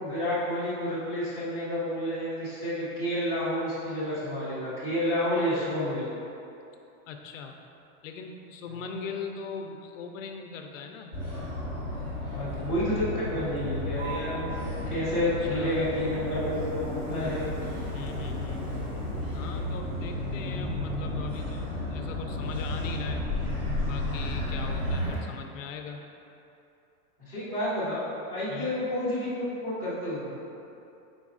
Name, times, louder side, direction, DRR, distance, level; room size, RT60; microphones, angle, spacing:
voice 1, 0.0-6.1 12.3-14.5 14.9-17.4 27.3-30.3, left 1 dB, 5° right, -15 dB, 0.4 m, -30 dB
voice 2, 7.0-7.6 8.0-11.1 15.4-15.8 17.9-18.6 19.3-23.3 23.9-26.0 28.5-28.8, left 5 dB, 60° left, 4 dB, 0.5 m, -40 dB
Motor vehicle (road), 11.1-25.2, left 1 dB, 20° right, 0.8 m, -32 dB
5.1 x 3.9 x 2.4 m, 2.8 s
supercardioid pair, 165°, 46 cm